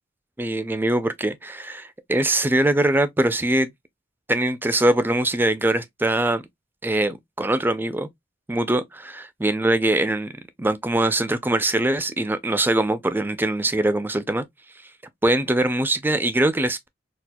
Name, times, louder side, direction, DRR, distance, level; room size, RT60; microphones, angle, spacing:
voice 1, 0.4-3.7 4.3-6.4 6.8-8.1 8.5-10.3 10.6-14.4 15.2-16.9, right 1 dB, 10° right, 0.4 m, -22 dB
4.2 x 2.4 x 2.2 m
head